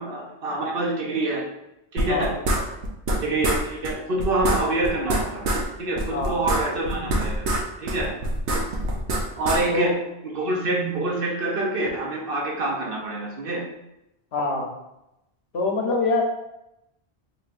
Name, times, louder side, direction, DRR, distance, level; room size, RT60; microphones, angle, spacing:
voice 1, 0.0-1.4 1.9-2.3 3.2-5.4 5.8-7.4 7.8-8.1 9.4-10.0 10.2-13.6, right 2 dB, 60° right, -1 dB, 0.9 m, -26 dB
sound 1, 2.0-3.2 3.4-3.6 3.8-3.9 4.2-5.6 6.0-7.6 7.9-9.6, right 1 dB, 90° right, 1.0 m, -24 dB
voice 2, 14.3-14.7 15.5-16.2, left 3 dB, 75° left, 1 dB, 1.0 m, -24 dB
4.2 x 3.3 x 2.5 m, 0.88 s
omnidirectional pair, 1.1 m